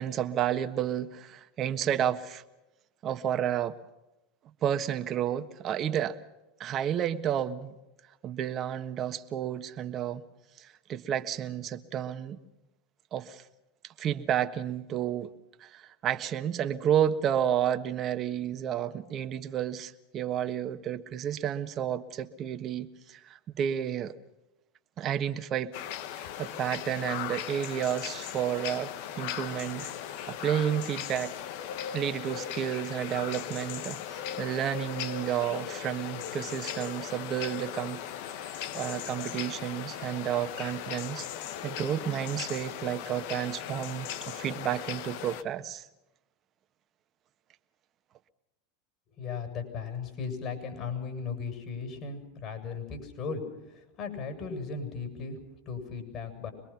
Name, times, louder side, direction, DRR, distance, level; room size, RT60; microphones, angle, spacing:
voice 1, 0.0-2.4 3.0-3.7 4.6-6.2 6.6-7.7 8.2-10.2 10.6-12.4 13.1-13.4 13.8-15.3 15.6-24.1 25.0-25.7 26.1-29.9 30.3-31.3 31.9-38.0 38.3-41.3 41.6-45.9, right 10 dB, 40° right, 8 dB, 1.4 m, -31 dB
sound 1, 25.7-45.4, left 10 dB, 65° left, 1.2 m, -38 dB
voice 2, 49.1-55.4 55.7-56.5, left 5 dB, 50° left, 6 dB, 7.7 m, -37 dB
25.0 x 21.5 x 5.9 m, 0.95 s
hypercardioid pair, 100°, 0 cm